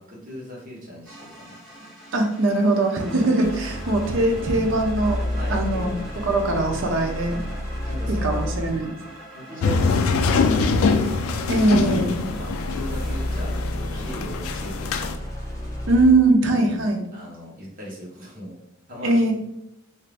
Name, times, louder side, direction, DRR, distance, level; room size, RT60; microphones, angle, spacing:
voice 1, 0.0-1.5 5.4-5.9 7.9-8.5 9.3-11.0 12.1-15.2 17.1-18.6 18.9-19.3, left 1 dB, 40° right, -4 dB, 1.1 m, -37 dB
sound 1, 1.0-13.5, right 1 dB, ahead, 1.5 m, -43 dB
voice 2, 2.1-7.4 8.1-8.9 11.5-12.1 15.9-17.1 19.0-19.3, right 2 dB, 65° right, 2 dB, 0.6 m, -21 dB
sound 2, 3.4-9.0 9.9-16.3, left 1 dB, 15° left, 0.7 m, -31 dB
sound 3, 9.6-15.2, left 4 dB, 85° left, 0.3 m, -24 dB
2.7 x 2.5 x 3.3 m, 0.77 s
head